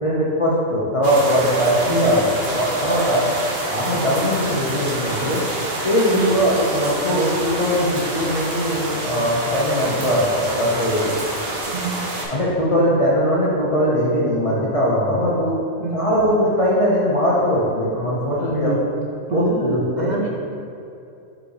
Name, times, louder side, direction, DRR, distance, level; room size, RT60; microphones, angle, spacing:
voice 1, 0.0-3.3 3.7-5.5 5.8-11.1 12.3-15.6 15.9-18.7 19.3-20.2, equal, 30° left, -6 dB, 0.8 m, -20 dB
sound 1, 1.0-12.2, right 1 dB, 50° right, 1.1 m, -27 dB
voice 2, 1.9-2.2 6.1-6.4 11.7-12.0 15.8-16.1 18.3-18.8 19.2-20.3, right 4 dB, 90° right, 0 dB, 0.4 m, -26 dB
5.2 x 4.3 x 4.9 m, 2.7 s
omnidirectional pair, 1.4 m